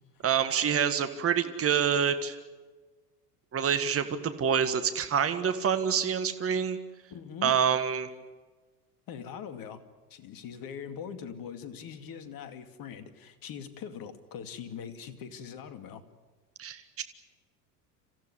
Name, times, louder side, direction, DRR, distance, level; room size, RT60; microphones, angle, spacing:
voice 1, 0.2-2.4 3.5-6.8 7.4-8.1 16.6-17.0, right 8 dB, 30° right, 9 dB, 1.8 m, -27 dB
voice 2, 7.1-7.6 9.1-9.8 10.1-16.0, left 7 dB, 45° left, 10 dB, 2.5 m, -42 dB
27.0 x 15.5 x 9.9 m, 1.3 s
hypercardioid pair, 80°, 48 cm